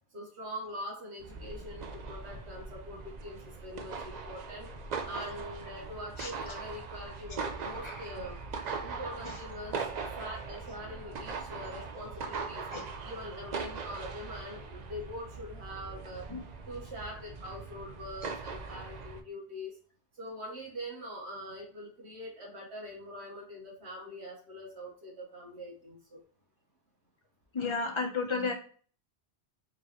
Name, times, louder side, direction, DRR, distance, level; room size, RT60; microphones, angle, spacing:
voice 1, 0.1-4.7 5.0-8.4 8.8-9.9 10.2-12.6 13.0-16.3 16.7-19.8 20.1-26.2, equal, 70° right, -1 dB, 1.5 m, -43 dB
sound 1, 1.2-19.2, right 4 dB, 55° right, 0.5 m, -40 dB
voice 2, 27.5-28.5, left 4 dB, 30° left, 3 dB, 0.7 m, -32 dB
4.5 x 2.9 x 3.1 m, 0.44 s
omnidirectional pair, 1.2 m